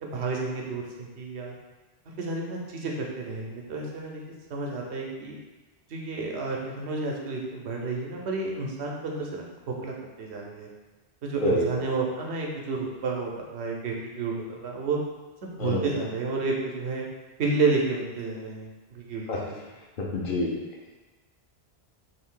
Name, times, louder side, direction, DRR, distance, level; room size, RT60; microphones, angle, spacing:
voice 1, 0.0-1.6 2.2-4.2 4.5-5.4 5.9-10.7 11.2-15.0 15.4-17.0 17.4-19.5, right 3 dB, 90° right, -1 dB, 0.9 m, -31 dB
voice 2, 20.0-20.5, left 1 dB, 60° left, -2 dB, 0.7 m, -26 dB
2.7 x 2.6 x 3.6 m, 1.2 s
omnidirectional pair, 1.1 m